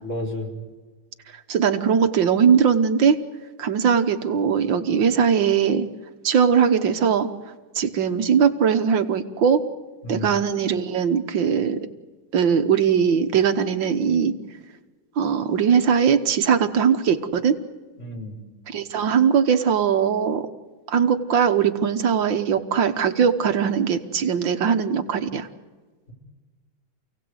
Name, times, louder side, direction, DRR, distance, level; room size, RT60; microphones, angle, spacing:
voice 1, 0.0-0.5 10.0-10.3 18.0-18.4, left 1 dB, 35° left, 0 dB, 4.6 m, -31 dB
voice 2, 1.5-3.2 3.6-5.9 6.2-7.3 7.8-9.6 10.1-11.9 12.3-14.3 15.2-17.6 18.7-20.4 20.9-25.5, right 7 dB, 70° right, 8 dB, 1.9 m, -20 dB
28.5 x 17.5 x 8.0 m, 1.3 s
omnidirectional pair, 2.2 m